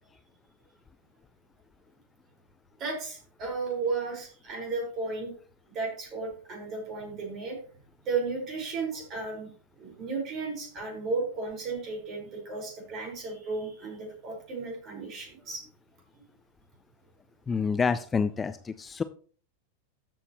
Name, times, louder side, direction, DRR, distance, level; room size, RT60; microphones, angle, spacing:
voice 1, 2.8-5.3 5.7-7.6 8.0-9.5 9.8-15.6 16.1-16.2, right 4 dB, 35° right, 1 dB, 4.9 m, -34 dB
voice 2, 17.5-19.0, left 5 dB, 15° left, 13 dB, 0.4 m, -28 dB
13.0 x 6.9 x 3.0 m, 0.43 s
figure-of-eight pair, 90°, 0 cm